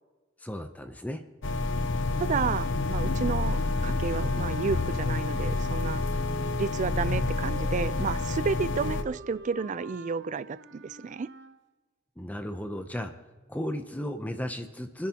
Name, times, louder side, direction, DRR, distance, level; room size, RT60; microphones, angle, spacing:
voice 1, 0.4-1.2 12.2-13.1 13.5-15.1, equal, 10° left, 7 dB, 0.6 m, -34 dB
sound 1, 1.4-9.0, left 3 dB, 65° left, 0.8 m, -28 dB
voice 2, 2.2-6.0 6.6-11.3, right 5 dB, 40° right, 17 dB, 0.3 m, -31 dB
sound 2, 2.9-11.6, right 3 dB, 60° right, 0.9 m, -46 dB
25.0 x 10.0 x 2.9 m, 1.3 s
head